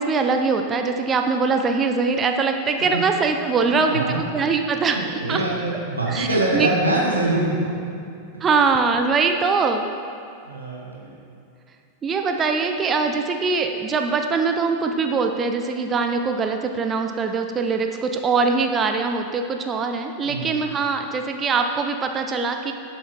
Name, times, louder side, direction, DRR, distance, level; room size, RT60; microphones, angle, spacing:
voice 1, 0.0-5.0 5.3-5.4 6.1-6.3 6.5-6.7 8.4-9.9 12.0-22.7, right 4 dB, 25° right, 5 dB, 0.6 m, -22 dB
voice 2, 3.5-4.2 4.9-7.7 10.4-11.1 20.2-20.5, right 2 dB, 80° right, -3 dB, 1.9 m, -24 dB
11.5 x 7.0 x 4.5 m, 2.5 s
figure-of-eight pair, 90°, 0 cm